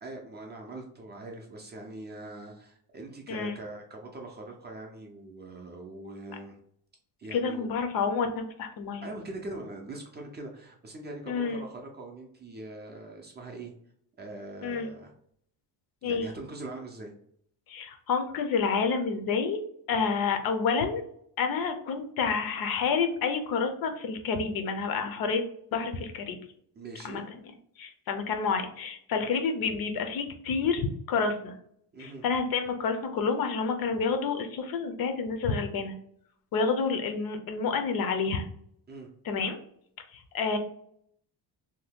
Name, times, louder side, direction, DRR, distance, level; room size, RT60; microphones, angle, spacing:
voice 1, 0.0-6.6 7.2-7.7 9.0-13.7 14.2-15.1 16.0-17.1 19.9-20.1 26.8-27.3 31.9-32.2 38.9-39.1, right 2 dB, 25° right, 1 dB, 0.4 m, -42 dB
voice 2, 7.3-9.1 11.3-11.6 14.6-14.9 16.0-16.3 17.7-19.6 19.9-21.0 21.4-25.4 25.7-26.4 27.0-27.2 27.8-31.5 32.0-36.0 36.5-38.5 39.2-39.6 40.1-40.6, left 5 dB, 55° left, 6 dB, 0.5 m, -29 dB
2.7 x 2.2 x 3.4 m, 0.67 s
cardioid pair, 145°, 42 cm